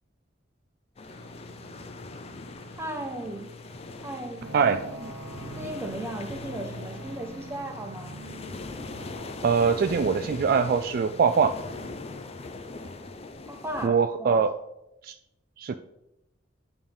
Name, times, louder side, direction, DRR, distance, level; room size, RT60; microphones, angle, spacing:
sound 1, 1.0-13.9, left 3 dB, 35° left, 0.5 m, -41 dB
sound 2, 1.1-10.1, left 1 dB, 60° left, 0.9 m, -51 dB
voice 1, 2.7-3.5 4.0-4.7 5.0-5.1 5.5-8.2 13.5-14.4, right 1 dB, 15° right, 2 dB, 1.0 m, -36 dB
sound 3, 4.4-12.6, right 1 dB, 75° right, 1.0 m, -44 dB
voice 2, 9.4-11.6 13.8-14.6 15.0-15.2 15.6-15.7, right 6 dB, 50° right, 9 dB, 0.3 m, -23 dB
9.4 x 5.3 x 3.5 m, 0.88 s
head